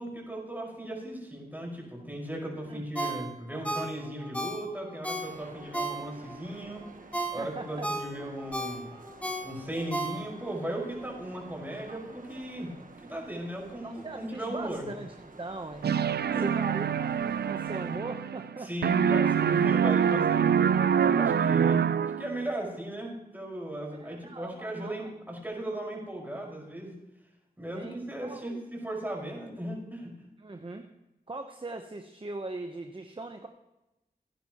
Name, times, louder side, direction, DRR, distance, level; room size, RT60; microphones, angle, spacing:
voice 1, 0.0-6.9 7.3-8.9 9.4-14.9 16.3-16.5 18.6-26.9 27.6-30.1, right 1 dB, 10° right, -1 dB, 5.3 m, -37 dB
Ringtone, 2.9-6.4 6.8-10.6 11.0-11.1, right 1 dB, 10° left, 1.9 m, -35 dB
sound 1, 5.2-18.0, right 3 dB, 55° right, 1.3 m, -51 dB
voice 2, 7.4-7.9 13.8-15.9 16.4-18.7 23.9-25.1 27.7-28.6 30.4-30.9 31.3-33.5, right 2 dB, 30° right, 5 dB, 0.9 m, -40 dB
sound 2, 15.8-18.6 18.8-22.4, right 7 dB, 75° right, 0.4 m, -25 dB
17.0 x 10.5 x 3.0 m, 0.97 s
cardioid pair, 45°, 17 cm